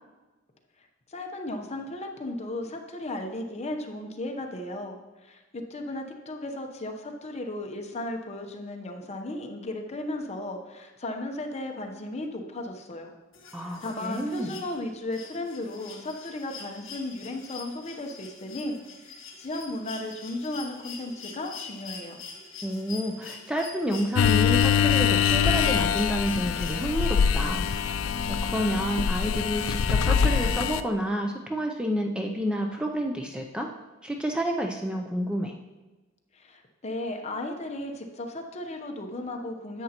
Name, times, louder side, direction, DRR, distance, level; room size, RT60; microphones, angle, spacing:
voice 1, 1.1-13.1 13.6-22.2 36.3-39.8, left 1 dB, 35° left, 3 dB, 0.8 m, -35 dB
sound 1, 13.3-27.3 28.7-28.8, left 5 dB, 70° left, 1.5 m, -44 dB
voice 2, 13.5-14.5 22.6-27.7 28.3-33.7 34.0-35.6, equal, 5° right, 2 dB, 0.4 m, -29 dB
sound 2, 24.2-30.8, left 7 dB, 85° left, 0.4 m, -24 dB
10.5 x 7.6 x 2.9 m, 1.2 s
head